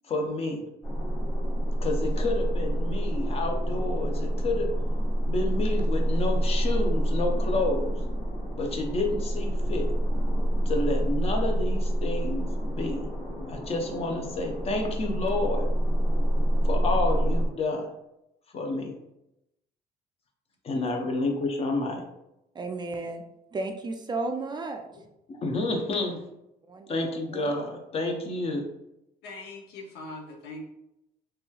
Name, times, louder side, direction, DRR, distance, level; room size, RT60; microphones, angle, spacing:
voice 1, 0.1-0.6 1.8-4.7 5.3-7.9 8.6-9.9 10.7-13.1 13.5-15.7 16.6-17.9 18.5-18.9 20.6-22.0 25.3-26.2 26.9-28.7, left 2 dB, 35° left, 3 dB, 0.6 m, -29 dB
sound 1, 0.8-17.5, equal, 15° left, 1.2 m, -27 dB
voice 2, 22.5-23.2 23.5-24.8 26.7-27.5, right 3 dB, 25° right, 5 dB, 0.3 m, -34 dB
voice 3, 29.2-30.6, left 2 dB, 85° left, 1 dB, 0.7 m, -41 dB
3.3 x 3.0 x 2.3 m, 0.86 s
cardioid pair, 110°, 17 cm